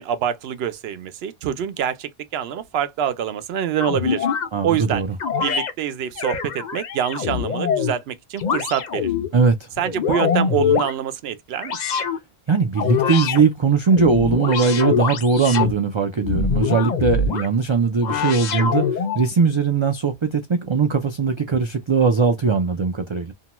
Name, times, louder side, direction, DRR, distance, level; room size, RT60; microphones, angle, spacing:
voice 1, 0.0-4.3 4.6-5.0 5.4-9.1 9.8-11.8, right 9 dB, 75° right, 0.8 m, -25 dB
sound 1, 3.8-4.5 5.2-5.7 6.2-8.0 8.4-9.3 9.8-10.9 11.6-12.2 12.8-13.4 13.9-15.7 16.2-17.5 18.0-19.2, left 6 dB, 50° left, 0.6 m, -23 dB
voice 2, 4.5-5.1 9.3-9.7 12.5-23.3, right 5 dB, 55° right, 0.3 m, -20 dB
2.7 x 2.1 x 2.9 m
omnidirectional pair, 1.1 m